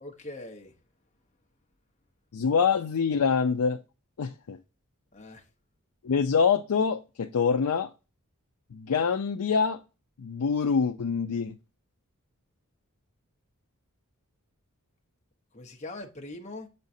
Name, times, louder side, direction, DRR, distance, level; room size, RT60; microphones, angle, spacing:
voice 1, 0.0-0.7 5.1-5.4 15.5-16.7, left 2 dB, 30° left, 0.9 m, -41 dB
voice 2, 2.3-3.8 4.2-4.6 6.0-7.9 8.7-9.8 10.2-11.6, left 6 dB, 85° left, 0.5 m, -25 dB
7.2 x 5.2 x 2.7 m
head